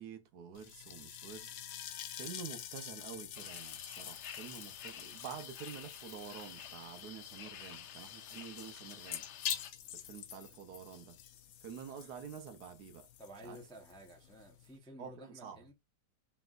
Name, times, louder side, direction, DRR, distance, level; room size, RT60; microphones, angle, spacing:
voice 1, 0.0-1.5 2.1-9.2 9.9-11.2 11.6-13.1 13.4-13.6 15.0-15.7, right 7 dB, 70° right, 1.3 m, -48 dB
sound 1, 0.5-14.8, left 10 dB, 70° left, 0.9 m, -47 dB
sound 2, 3.3-9.7, left 9 dB, 90° left, 0.6 m, -50 dB
voice 2, 13.2-15.7, equal, 5° left, 0.4 m, -53 dB
4.2 x 3.4 x 2.5 m
omnidirectional pair, 1.8 m